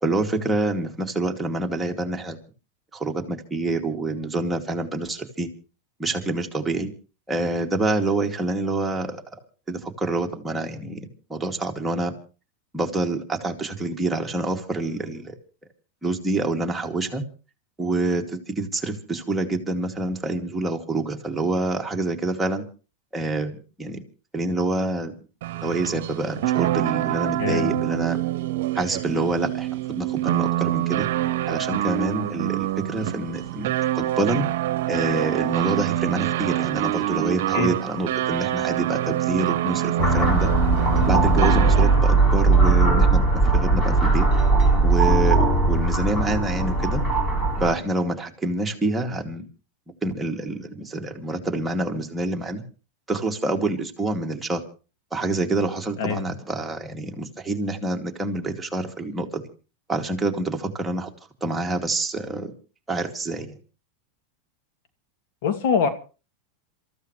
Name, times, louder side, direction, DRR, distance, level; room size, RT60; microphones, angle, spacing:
voice 1, 0.0-2.4 2.9-5.5 6.0-6.9 7.3-9.2 9.7-12.1 12.7-15.3 16.0-17.2 17.8-22.6 23.1-23.5 23.8-24.0 24.3-25.1 25.6-28.2 28.7-31.1 31.5-34.5 34.9-40.5 41.1-43.2 43.5-44.3 44.8-47.0 47.6-49.4 50.0-52.6 53.1-54.6 55.1-59.4 59.9-61.1 61.4-62.5 62.9-63.6, right 2 dB, 10° right, 1 dB, 2.4 m, -27 dB
sound 1, 25.4-42.1, right 14 dB, 70° right, 0.9 m, -26 dB
voice 2, 27.4-27.8 37.5-37.7 56.0-56.2 65.4-65.9, left 6 dB, 65° left, 7 dB, 2.4 m, -23 dB
sound 2, 40.0-47.7, right 3 dB, 25° left, 4.9 m, -19 dB
27.0 x 14.5 x 3.2 m, 0.36 s
supercardioid pair, 125°, 0 cm